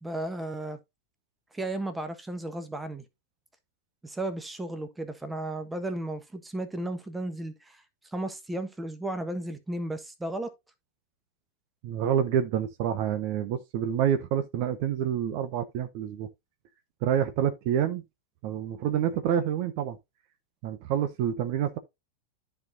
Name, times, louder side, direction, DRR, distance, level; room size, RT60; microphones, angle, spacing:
voice 1, 0.0-0.8 1.5-3.0 4.0-10.5, right 1 dB, 10° right, 1.4 m, -34 dB
voice 2, 11.8-16.3 17.0-18.0 18.4-20.0 20.6-21.8, right 9 dB, 45° right, 1.0 m, -27 dB
13.0 x 4.5 x 2.7 m
figure-of-eight pair, 90°, 0 cm